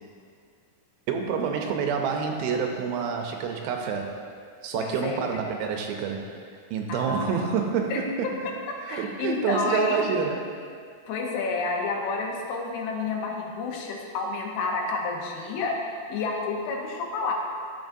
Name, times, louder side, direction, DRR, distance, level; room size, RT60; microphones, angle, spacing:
voice 1, 1.1-4.2 4.6-6.3 6.7-8.3 8.8-10.4, right 6 dB, 80° right, 3 dB, 2.4 m, -28 dB
voice 2, 4.7-5.3 6.9-7.4 7.9-8.3 8.9-10.2 11.1-15.8 16.1-17.3, left 4 dB, 85° left, 0 dB, 2.9 m, -30 dB
12.5 x 5.7 x 2.6 m, 2.2 s
omnidirectional pair, 4.5 m